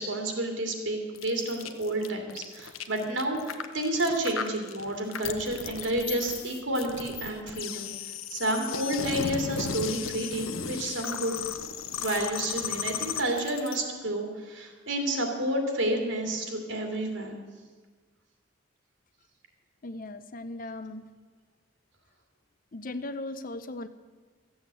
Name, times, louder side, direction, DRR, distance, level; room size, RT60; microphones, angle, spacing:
voice 1, 0.0-7.9 8.3-11.4 12.0-17.4, right 1 dB, 70° right, 3 dB, 2.5 m, -30 dB
sound 1, 1.1-13.8, left 7 dB, 90° left, 0.9 m, -36 dB
voice 2, 19.8-21.1 22.7-23.9, left 2 dB, 45° left, 11 dB, 0.6 m, -37 dB
14.0 x 7.9 x 8.1 m, 1.5 s
head